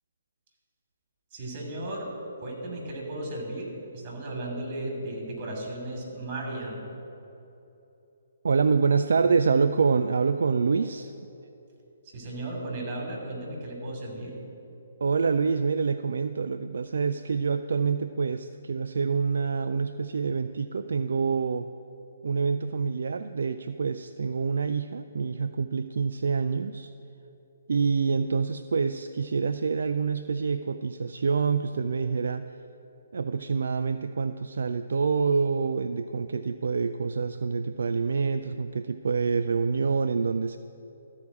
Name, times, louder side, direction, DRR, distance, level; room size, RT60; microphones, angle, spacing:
voice 1, 1.3-2.1 2.4-6.9 12.1-14.3, right 1 dB, 35° right, 0 dB, 2.8 m, -35 dB
voice 2, 8.4-11.1 15.0-21.7 22.2-26.9 27.7-32.4 33.1-40.6, right 5 dB, 65° right, 9 dB, 0.3 m, -26 dB
13.5 x 4.8 x 7.3 m, 3.0 s
figure-of-eight pair, 135°, 0 cm